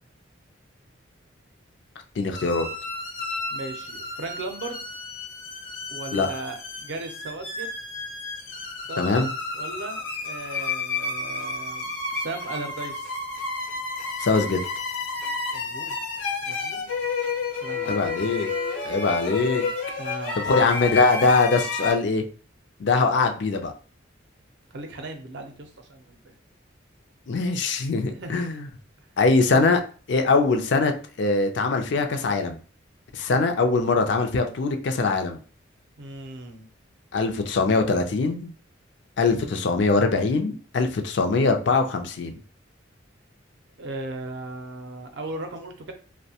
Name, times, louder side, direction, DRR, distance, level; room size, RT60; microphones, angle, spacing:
voice 1, 2.2-2.7 6.1-6.3 9.0-9.3 14.2-14.6 17.9-18.5 18.8-19.6 20.4-22.2 22.8-23.7 27.3-28.7 29.2-29.8 30.1-30.9 31.2-32.6 33.1-35.4 37.1-38.5 39.2-42.3, left 3 dB, 60° left, 5 dB, 0.4 m, -22 dB
sound 1, 2.3-21.9, left 4 dB, 85° left, 1.0 m, -31 dB
voice 2, 3.5-4.8 5.9-7.7 8.9-9.2 9.5-13.1 15.5-16.0 16.4-16.9 17.6-18.2 20.0-20.5 24.7-26.3 28.1-28.5 36.0-36.7 43.8-45.9, right 2 dB, 60° right, 5 dB, 0.5 m, -37 dB
2.6 x 2.1 x 2.8 m, 0.39 s
head